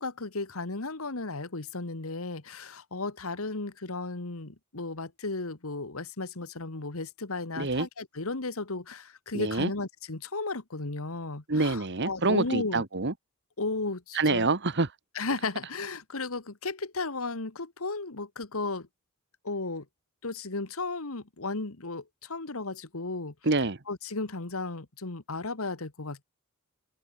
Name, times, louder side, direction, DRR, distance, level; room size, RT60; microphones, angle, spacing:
voice 1, 0.0-12.9 13.6-14.5 15.2-18.9 19.4-19.9 20.2-23.3 23.9-26.2, left 3 dB, 70° left, 1.7 m, -34 dB
voice 2, 7.6-7.9 9.3-9.7 11.5-13.1 14.1-14.9 23.4-23.8, right 3 dB, 50° right, 1.4 m, -26 dB
open air
head